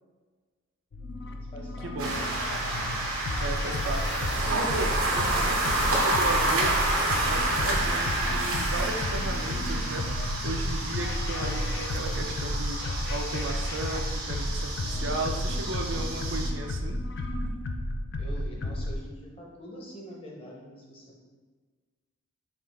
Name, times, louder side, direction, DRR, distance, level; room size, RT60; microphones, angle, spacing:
sound 1, 0.9-18.9, left 1 dB, 50° left, 0.3 m, -32 dB
voice 1, 1.2-2.2 18.2-21.2, equal, 25° left, -3 dB, 0.8 m, -45 dB
voice 2, 1.8-2.2 3.4-6.7 7.2-17.0, right 2 dB, 60° right, 3 dB, 0.4 m, -35 dB
sound 2, 2.0-16.5, right 2 dB, 80° right, 0.8 m, -29 dB
5.4 x 2.4 x 3.4 m, 1.4 s
head